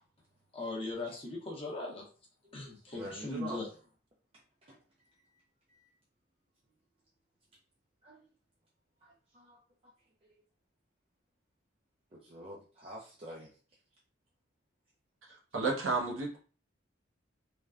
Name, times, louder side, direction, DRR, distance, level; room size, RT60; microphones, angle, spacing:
voice 1, 0.5-2.0 2.5-3.7, left 2 dB, 30° left, -1 dB, 0.7 m, -39 dB
voice 2, 2.6-3.6 4.7-4.8 5.7-5.8 8.0-8.2 9.0-9.6 12.1-13.5, right 1 dB, 25° right, -4 dB, 0.4 m, -46 dB
voice 3, 15.5-16.4, right 3 dB, 80° right, 0 dB, 0.9 m, -31 dB
3.2 x 2.1 x 2.4 m, 0.38 s
head